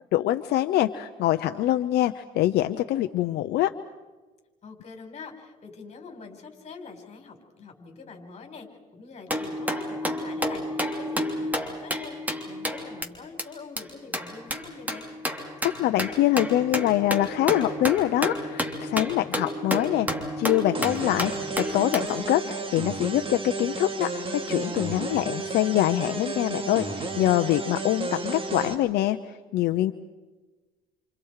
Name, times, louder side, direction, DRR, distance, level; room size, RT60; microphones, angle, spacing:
voice 1, 0.1-3.7 15.6-20.1 20.4-29.9, left 14 dB, 75° left, 8 dB, 0.9 m, -24 dB
voice 2, 4.6-8.7 8.9-15.1, left 4 dB, 40° left, 4 dB, 5.3 m, -44 dB
sound 1, 9.3-13.1 13.4-13.5 13.8-13.9 14.1-22.1, equal, 10° right, 3.1 m, -31 dB
sound 2, 20.7-28.7, right 3 dB, 30° right, 3.0 m, -32 dB
29.0 x 28.0 x 4.9 m, 1.2 s
cardioid pair, 110°, 17 cm